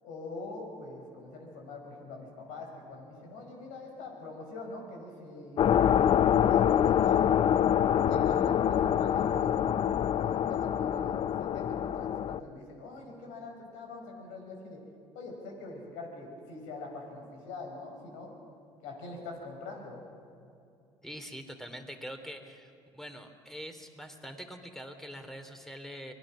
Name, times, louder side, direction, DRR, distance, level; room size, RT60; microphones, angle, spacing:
voice 1, 0.0-5.9 6.5-7.3 7.9-9.6 10.1-14.8 15.1-18.3 18.8-20.0, left 3 dB, 70° left, 2 dB, 5.6 m, -43 dB
sound 1, 5.6-12.4, left 9 dB, 45° left, 0.6 m, -25 dB
voice 2, 21.0-26.1, equal, 5° left, 6 dB, 3.0 m, -44 dB
24.5 x 19.5 x 6.3 m, 2.6 s
hypercardioid pair, 65°, 13 cm